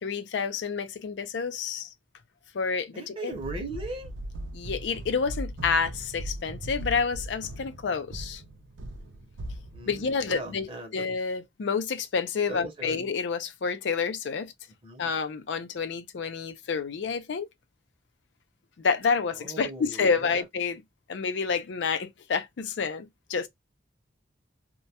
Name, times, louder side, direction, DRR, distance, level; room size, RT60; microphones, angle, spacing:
voice 1, 0.0-1.9 2.5-3.3 4.5-8.4 9.9-14.5 15.0-17.5 18.8-20.8 21.1-23.5, left 5 dB, 70° left, 0.4 m, -29 dB
voice 2, 2.9-4.1 9.7-11.1 12.5-13.0 14.8-15.1 19.4-20.4, right 2 dB, 30° right, 0.7 m, -38 dB
sound 1, 3.3-10.5, equal, 85° right, 0.5 m, -39 dB
2.2 x 2.1 x 2.7 m
head